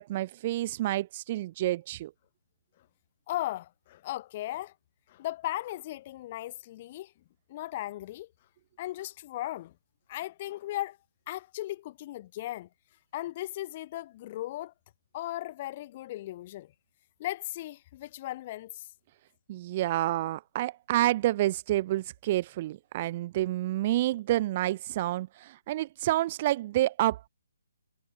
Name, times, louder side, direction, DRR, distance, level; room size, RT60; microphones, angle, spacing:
voice 1, 0.0-2.1 19.5-27.3, right 15 dB, 25° right, 0.9 m, -29 dB
voice 2, 3.3-4.7 5.1-7.1 7.5-8.3 8.8-9.7 10.1-11.0 11.3-12.7 13.1-14.7 15.1-16.7 17.2-18.9, left 15 dB, 25° left, 3.8 m, -37 dB
hypercardioid pair, 170°, 0 cm